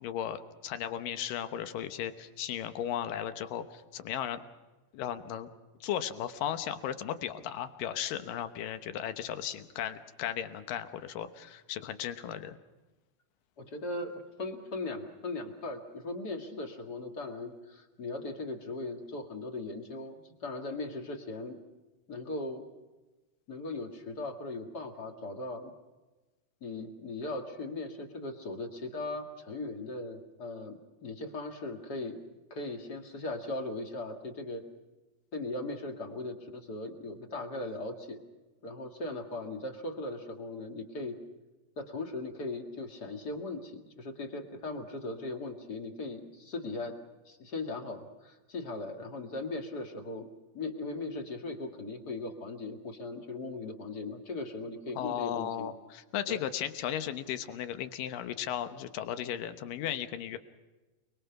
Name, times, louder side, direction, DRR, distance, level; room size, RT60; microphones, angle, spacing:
voice 1, 0.0-4.4 4.9-5.5 5.8-12.6 55.0-60.4, left 10 dB, 85° left, 10 dB, 2.8 m, -36 dB
voice 2, 13.6-21.6 22.1-22.7 23.5-25.7 26.6-32.2 32.5-34.6 35.3-38.2 38.6-41.2 41.8-47.0 47.3-50.3 50.5-55.7 56.3-56.4, left 2 dB, 35° left, 5 dB, 2.2 m, -38 dB
29.0 x 21.5 x 6.0 m, 1.2 s
omnidirectional pair, 3.8 m